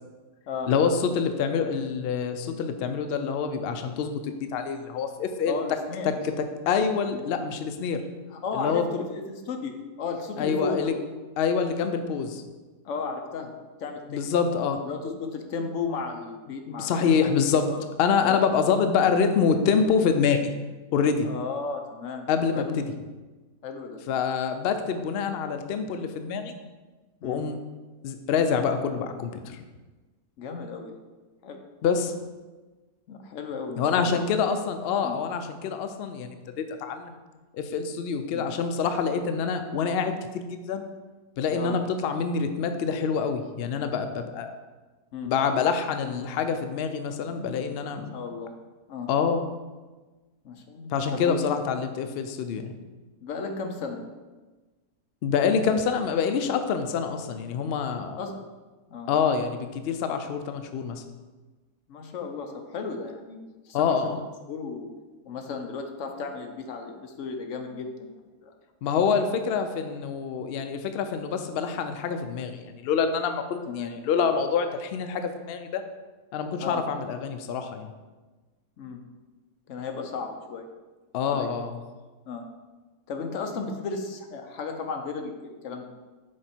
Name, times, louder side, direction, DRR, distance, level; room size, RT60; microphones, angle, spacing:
voice 1, 0.7-5.6 6.2-6.3 6.7-8.0 8.5-8.9 10.4-10.9 11.4-12.4 14.1-14.8 16.7-17.7 18.0-20.5 20.9-21.3 22.3-22.8 24.1-26.5 27.2-27.6 28.0-29.6 31.8-32.1 33.8-37.2 37.5-40.8 41.4-44.5 45.3-48.2 49.1-49.4 50.9-52.7 55.2-58.2 59.1-61.0 63.7-64.2 68.8-75.8 76.3-77.9 81.1-81.8, left 6 dB, 80° left, 8 dB, 0.5 m, -26 dB
voice 2, 5.5-6.2 7.1-7.2 8.3-10.9 12.8-13.5 13.8-14.2 14.8-17.3 17.7-17.8 18.2-18.4 21.2-22.7 23.6-24.0 27.2-27.5 30.4-31.0 31.4-31.6 33.1-34.2 35.0-35.2 38.3-38.5 41.5-41.8 45.1-45.3 47.9-48.5 48.9-49.1 50.4-51.5 53.2-54.0 58.2-58.3 58.9-59.1 61.9-63.4 63.7-64.9 65.2-68.1 68.4-68.5 73.7-73.9 76.6-76.8 78.8-79.0 79.7-80.7 81.2-81.5 82.3-82.4 83.1-85.9, left 4 dB, 60° left, 4 dB, 1.0 m, -34 dB
6.2 x 4.0 x 4.4 m, 1.3 s
omnidirectional pair, 1.6 m